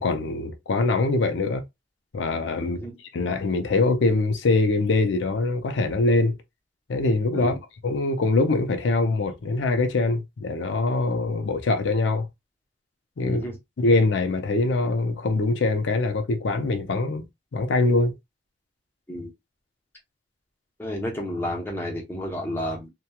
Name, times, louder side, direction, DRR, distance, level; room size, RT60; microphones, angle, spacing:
voice 1, 0.0-1.6 2.1-2.8 3.1-6.4 6.9-7.6 7.8-12.3 13.2-13.4 13.8-17.3 17.5-18.2, left 3 dB, 85° left, 0.5 m, -23 dB
voice 2, 2.6-2.9 7.3-7.6 13.2-13.6 19.1-19.3 20.8-22.9, equal, 10° left, 0.7 m, -31 dB
2.9 x 2.2 x 2.2 m
head